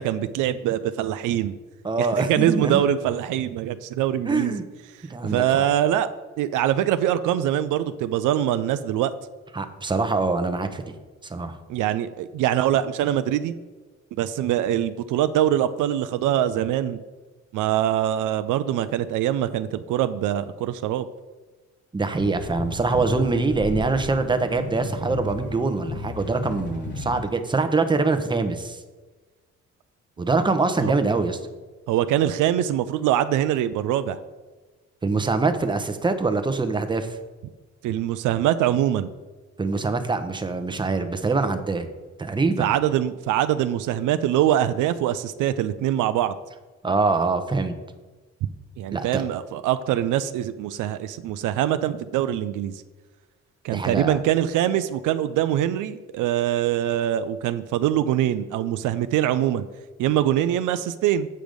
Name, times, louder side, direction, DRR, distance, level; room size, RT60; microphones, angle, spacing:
voice 1, 0.0-1.6 2.0-4.6 5.2-6.1 6.4-9.1 11.7-13.5 14.2-17.0 17.5-21.1 30.8-30.9 31.9-34.2 37.8-39.1 42.6-46.3 48.8-52.8 53.6-59.6 60.0-61.3, right 11 dB, 85° right, 12 dB, 0.5 m, -23 dB
voice 2, 1.8-2.8 4.2-4.6 5.1-5.6 9.5-10.8 11.3-11.5 21.9-28.8 30.2-31.4 35.0-37.1 39.6-41.9 42.2-42.7 46.8-47.7 48.9-49.2 53.7-54.2, right 3 dB, 15° right, 8 dB, 0.8 m, -24 dB
sound 1, 22.2-27.2, left 2 dB, 35° left, 1.7 m, -34 dB
7.7 x 5.1 x 5.1 m, 1.3 s
cardioid pair, 90°, 30 cm